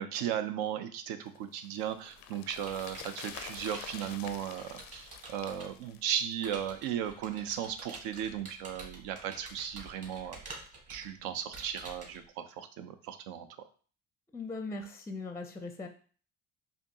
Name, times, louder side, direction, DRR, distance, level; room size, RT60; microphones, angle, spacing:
voice 1, 0.0-10.4 10.9-13.5, right 9 dB, 75° right, 9 dB, 0.6 m, -36 dB
sound 1, 1.3-6.8 7.0-7.1, left 10 dB, 70° left, 0.5 m, -48 dB
Computer keyboard, 1.8-5.8 6.4-12.2, right 3 dB, 40° right, 1.7 m, -48 dB
voice 2, 14.3-15.9, left 3 dB, 10° left, 6 dB, 0.5 m, -39 dB
4.3 x 2.7 x 2.8 m, 0.41 s
hypercardioid pair, 65°, 36 cm